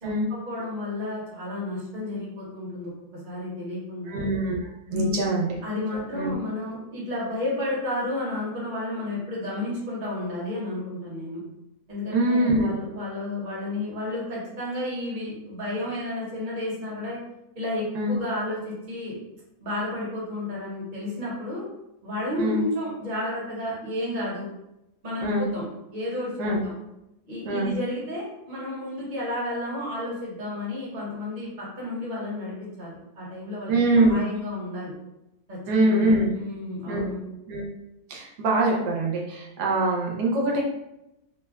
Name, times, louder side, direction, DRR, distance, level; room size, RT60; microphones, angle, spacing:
voice 1, 0.0-2.9 3.2-4.2 4.9-5.3 5.6-11.4 11.9-17.2 17.5-19.1 19.6-21.6 22.0-24.5 25.0-25.6 25.9-26.7 27.3-34.9 35.5-35.6 35.8-37.2, left 1 dB, 35° right, -5 dB, 0.9 m, -32 dB
voice 2, 4.1-5.6 6.1-6.3 12.1-12.7 17.9-18.1 22.4-22.6 25.2-25.5 26.4-26.6 27.4-27.7 33.7-34.2 35.7-36.3 36.8-37.1 37.5-37.6 38.1-40.6, right 1 dB, 90° right, -2 dB, 1.2 m, -23 dB
3.1 x 2.1 x 2.3 m, 0.89 s
omnidirectional pair, 1.7 m